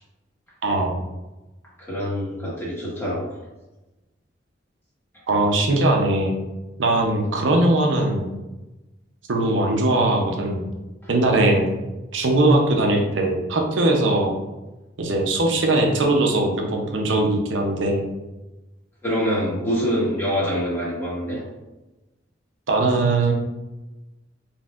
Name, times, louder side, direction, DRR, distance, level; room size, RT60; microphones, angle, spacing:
voice 1, 0.6-0.9 5.3-6.3 6.8-8.3 9.3-10.6 11.1-11.7 12.1-14.4 15.0-18.1 22.7-23.3, right 2 dB, 85° right, 1 dB, 0.7 m, -20 dB
voice 2, 1.8-3.3 19.0-21.4, equal, 10° left, -7 dB, 1.4 m, -25 dB
4.3 x 3.3 x 2.4 m, 1.0 s
head